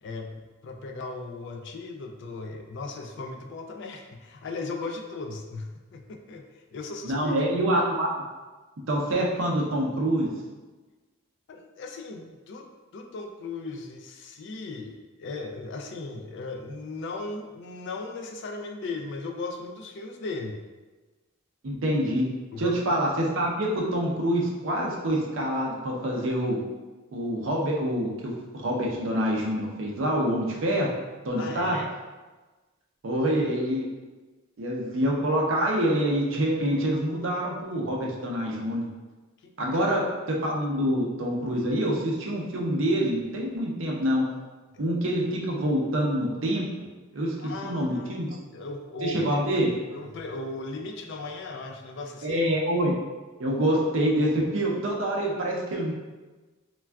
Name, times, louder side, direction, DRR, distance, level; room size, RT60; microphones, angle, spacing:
voice 1, 0.0-6.5 6.7-7.4 11.5-12.7 12.9-20.6 22.5-22.8 31.4-31.9 39.4-40.0 44.7-44.8 47.2-49.4 49.9-52.4, left 3 dB, 55° left, 3 dB, 0.3 m, -37 dB
voice 2, 7.0-8.1 8.9-10.3 21.6-22.2 22.6-26.7 27.1-28.1 28.5-30.9 31.2-31.8 33.0-33.8 34.6-38.9 39.6-40.0 40.3-44.2 44.8-47.4 47.6-48.3 49.0-49.7 52.2-52.9 53.4-55.9, right 1 dB, 65° right, -2 dB, 0.5 m, -26 dB
3.3 x 2.3 x 2.2 m, 1.3 s
head